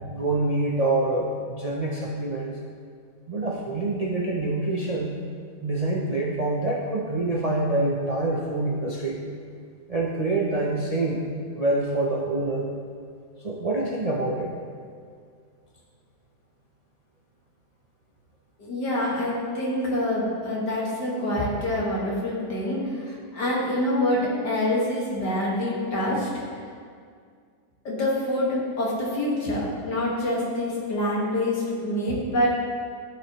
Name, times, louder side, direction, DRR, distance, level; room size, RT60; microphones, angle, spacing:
voice 1, 0.1-2.6 3.3-5.1 5.6-9.2 9.9-11.2 11.6-12.7 13.4-14.5, right 2 dB, 40° right, -4 dB, 0.6 m, -26 dB
voice 2, 18.6-26.3 27.8-32.5, left 1 dB, 80° left, -5 dB, 2.4 m, -26 dB
14.5 x 5.0 x 3.1 m, 2.1 s
omnidirectional pair, 1.8 m